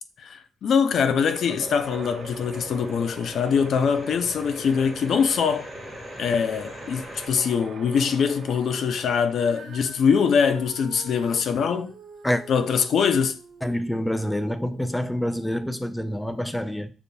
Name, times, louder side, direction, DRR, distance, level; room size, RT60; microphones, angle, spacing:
voice 1, 0.2-5.7 6.2-11.9 12.5-13.4, left 6 dB, 65° left, 0.4 m, -23 dB
sound 1, 1.0-9.8, right 5 dB, 60° right, 0.8 m, -43 dB
sound 2, 1.4-7.3, left 1 dB, 20° left, 1.4 m, -42 dB
Female singing, 9.3-15.7 16.4-16.5, right 4 dB, 90° right, 1.2 m, -46 dB
voice 2, 13.6-16.9, equal, 5° left, 0.4 m, -27 dB
6.8 x 2.6 x 2.3 m
cardioid pair, 90°, 0 cm